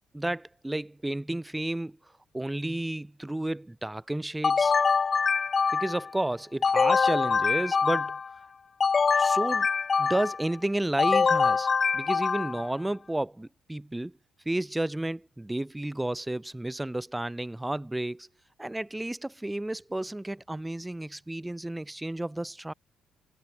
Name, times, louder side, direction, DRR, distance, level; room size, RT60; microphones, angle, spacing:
voice 1, 0.1-2.0 2.3-4.7 5.7-8.2 9.1-9.7 10.0-14.1 14.4-18.3 18.6-22.7, right 1 dB, 10° right, 3.3 m, -32 dB
sound 1, 4.4-6.1 6.6-8.3 8.8-10.4 11.0-12.7, left 5 dB, 40° left, 2.4 m, -24 dB
hypercardioid pair, 55°, 0 cm